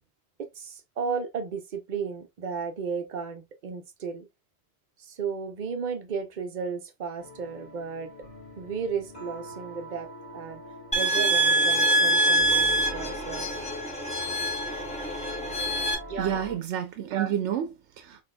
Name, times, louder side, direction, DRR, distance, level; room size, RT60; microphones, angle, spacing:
voice 1, 0.4-4.3 5.0-8.1 8.6-10.6 10.9-13.7 16.1-16.4, right 6 dB, 50° right, 0.7 m, -34 dB
sound 1, 7.2-16.7, equal, 35° left, 2.2 m, -43 dB
sound 2, 10.9-15.9, right 1 dB, 5° left, 0.9 m, -25 dB
voice 2, 16.2-18.2, right 10 dB, 90° right, 0.9 m, -29 dB
4.3 x 3.6 x 2.2 m
omnidirectional pair, 1.1 m